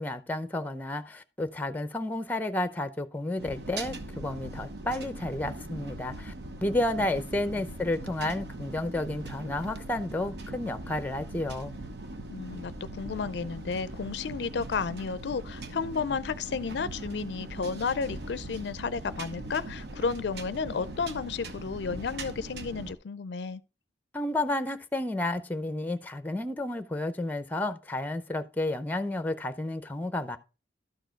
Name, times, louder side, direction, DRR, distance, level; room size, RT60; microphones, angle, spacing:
voice 1, 0.0-6.3 6.6-11.7 24.1-30.4, left 1 dB, 10° left, 0.6 m, -31 dB
sound 1, 3.4-22.9, right 2 dB, 65° right, 1.0 m, -40 dB
voice 2, 12.3-23.6, left 5 dB, 70° left, 0.4 m, -32 dB
12.5 x 4.6 x 4.5 m
head